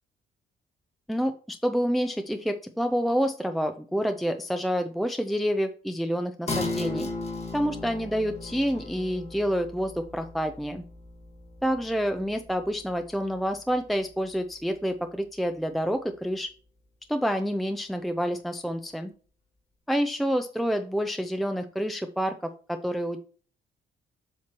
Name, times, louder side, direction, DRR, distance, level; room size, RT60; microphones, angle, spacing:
voice 1, 1.1-7.1 7.5-10.8 11.6-16.5 17.1-19.1 19.9-23.2, equal, ahead, 7 dB, 0.5 m, -28 dB
sound 1, 6.5-13.5 13.9-14.0, left 2 dB, 30° left, 1.8 m, -36 dB
7.5 x 5.8 x 3.0 m, 0.41 s
cardioid pair, 90°, 20 cm